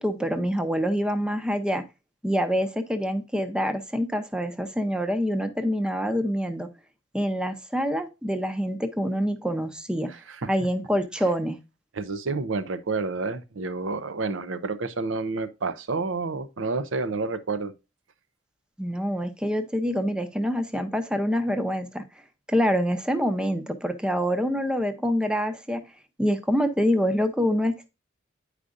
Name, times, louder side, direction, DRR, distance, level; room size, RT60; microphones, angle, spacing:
voice 1, 0.0-1.8 2.2-6.7 7.1-10.1 10.4-11.6 18.8-22.0 22.5-25.8 26.2-27.9, equal, 5° right, 0.6 m, -26 dB
voice 2, 10.1-10.5 11.9-17.7, right 3 dB, 80° right, 0.6 m, -29 dB
9.5 x 5.0 x 2.5 m
head